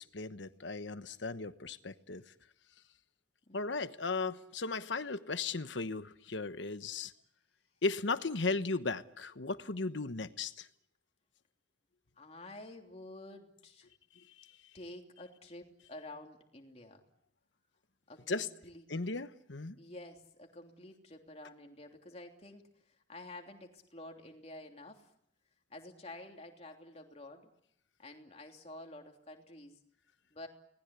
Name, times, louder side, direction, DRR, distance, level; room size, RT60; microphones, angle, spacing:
voice 1, 0.1-2.2 3.5-7.1 7.8-10.7 14.4-14.5 18.3-18.5 18.9-19.8, left 3 dB, 80° left, 11 dB, 1.2 m, -36 dB
voice 2, 3.5-3.8 12.2-13.9 14.7-17.0 18.1-18.8 19.8-25.1 25.7-27.5 28.0-29.8 30.3-30.5, left 1 dB, 35° left, 3 dB, 3.1 m, -50 dB
30.0 x 19.5 x 8.3 m, 0.75 s
head